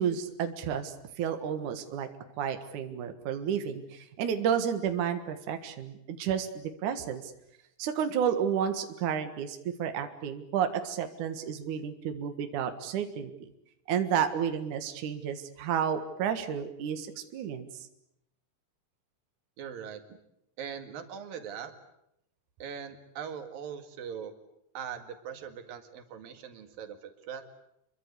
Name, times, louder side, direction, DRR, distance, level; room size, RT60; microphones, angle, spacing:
voice 1, 0.0-2.1 2.4-7.3 7.8-13.3 13.9-17.1 17.3-17.7, right 8 dB, 65° right, 7 dB, 3.0 m, -31 dB
voice 2, 19.6-20.2 20.6-21.7 22.6-24.3 24.8-27.4, right 8 dB, 90° right, 7 dB, 3.8 m, -41 dB
27.5 x 23.0 x 8.3 m, 0.80 s
omnidirectional pair, 3.9 m